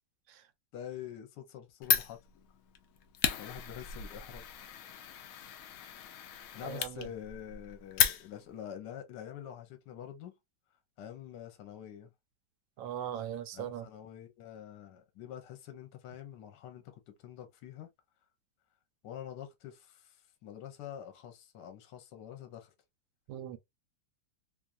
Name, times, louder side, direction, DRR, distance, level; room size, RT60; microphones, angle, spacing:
voice 1, 0.7-2.2 3.4-4.4 4.9-5.6 6.5-10.3 11.0-12.1 13.5-16.9 17.2-17.9 19.0-22.7, left 10 dB, 70° left, 1.2 m, -46 dB
Fire, 1.8-8.6, left 9 dB, 85° left, 0.7 m, -34 dB
voice 2, 6.6-7.1 12.8-13.9 23.3-23.6, right 10 dB, 85° right, 1.3 m, -39 dB
3.2 x 2.3 x 2.4 m
omnidirectional pair, 2.0 m